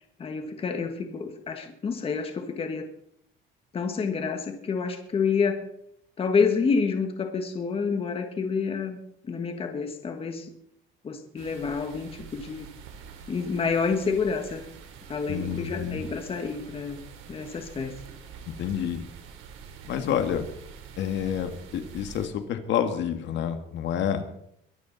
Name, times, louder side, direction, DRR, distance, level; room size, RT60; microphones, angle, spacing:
voice 1, 0.2-2.9 3.7-5.6 6.2-9.0 9.2-10.5 11.0-12.7 13.3-14.6 15.1-17.0 17.3-17.9, left 5 dB, 25° left, 5 dB, 1.6 m, -28 dB
sound 1, 11.4-22.3, right 6 dB, 75° right, 3.7 m, -46 dB
voice 2, 15.3-16.0 18.5-19.0 19.8-20.5 21.0-24.2, left 9 dB, 60° left, 7 dB, 1.9 m, -29 dB
22.5 x 13.5 x 4.1 m, 0.73 s
cardioid pair, 165°, 21 cm